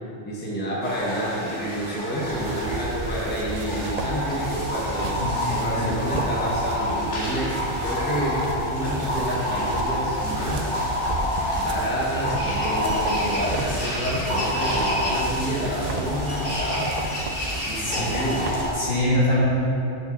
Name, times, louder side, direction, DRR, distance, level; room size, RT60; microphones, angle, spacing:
voice 1, 0.2-5.1 5.5-7.5 7.8-10.7 11.5-16.9 17.6-18.7, equal, 10° left, -5 dB, 1.1 m, -29 dB
sound 1, 0.8-18.7, left 1 dB, 65° left, 2.6 m, -28 dB
sound 2, 2.2-18.7, right 2 dB, 45° right, 0.5 m, -33 dB
voice 2, 5.2-6.1 15.0-15.1 17.8-18.1 18.7-19.4, left 1 dB, 50° left, -8 dB, 2.6 m, -25 dB
6.8 x 6.3 x 7.1 m, 3.0 s
omnidirectional pair, 1.3 m